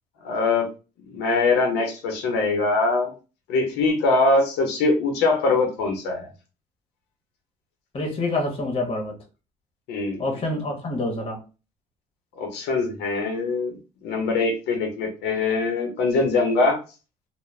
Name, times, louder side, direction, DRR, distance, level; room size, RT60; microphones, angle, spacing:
voice 1, 0.2-0.7 1.1-3.1 3.5-6.3 9.9-10.2 12.4-13.8 14.0-16.8, left 3 dB, 85° left, 3 dB, 0.7 m, -22 dB
voice 2, 7.9-9.1 10.2-11.4, left 2 dB, 35° left, 2 dB, 0.9 m, -27 dB
2.4 x 2.1 x 3.1 m, 0.32 s
cardioid pair, 110°, 17 cm